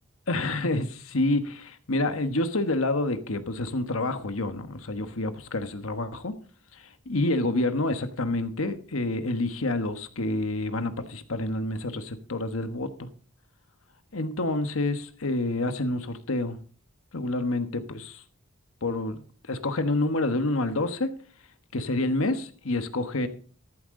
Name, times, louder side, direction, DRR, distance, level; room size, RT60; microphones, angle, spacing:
voice 1, 0.3-6.3 6.7-13.1 14.1-16.6 17.1-18.2 18.8-19.2 19.4-21.1 21.7-23.3, left 2 dB, 75° left, 1.3 m, -28 dB
14.0 x 11.5 x 3.7 m
head